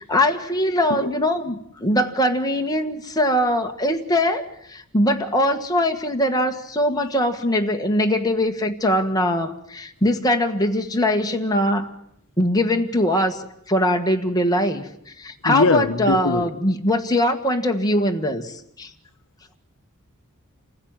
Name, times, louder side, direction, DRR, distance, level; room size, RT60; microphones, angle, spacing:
voice 1, 0.1-11.9 12.4-13.4 13.7-18.9, left 1 dB, 15° left, 1.6 m, -22 dB
voice 2, 15.4-16.4, left 3 dB, 60° left, 0.9 m, -21 dB
27.5 x 15.5 x 8.9 m
head